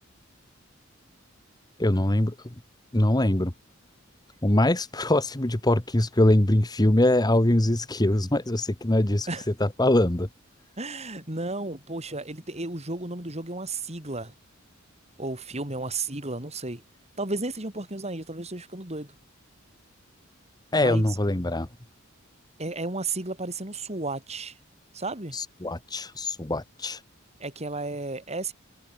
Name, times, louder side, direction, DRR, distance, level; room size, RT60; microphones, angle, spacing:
voice 1, 1.8-2.5 2.9-3.5 4.4-9.3 9.6-10.3 20.7-21.7 25.3-27.0, left 1 dB, 20° left, 1.3 m, -23 dB
voice 2, 10.8-14.3 15.2-16.8 17.2-19.1 20.8-21.0 22.6-24.5 24.9-25.4 27.4-28.5, right 2 dB, 35° right, 5.7 m, -33 dB
head